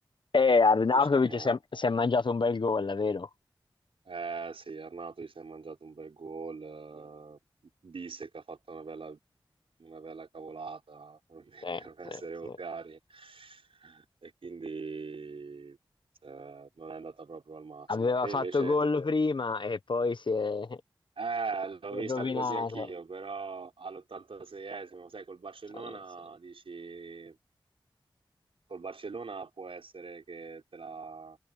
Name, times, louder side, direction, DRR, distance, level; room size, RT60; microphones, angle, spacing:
voice 1, 0.3-3.3 11.6-12.6 17.9-20.8 21.9-22.9, left 4 dB, 60° left, 1.0 m, -27 dB
voice 2, 0.9-1.6 4.1-7.4 7.8-9.2 9.8-15.8 16.2-18.8 21.2-27.4 28.7-31.4, right 4 dB, 80° right, 5.6 m, -41 dB
wide cardioid pair, 50°, 9 cm